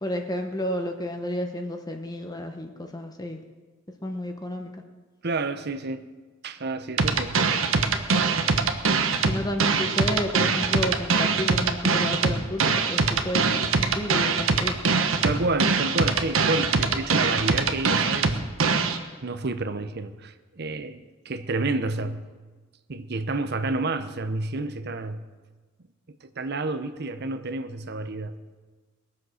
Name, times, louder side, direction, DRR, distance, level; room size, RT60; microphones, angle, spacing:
voice 1, 0.0-3.4 4.0-4.7 9.3-14.8, left 1 dB, 20° left, 1.0 m, -31 dB
voice 2, 5.2-6.1 6.4-7.5 15.2-18.4 19.2-21.0 21.2-22.3 22.9-25.3 26.2-28.4, right 2 dB, 55° right, 0.8 m, -29 dB
sound 1, 7.0-19.0, right 4 dB, 85° right, 1.2 m, -23 dB
21.0 x 7.7 x 6.4 m
head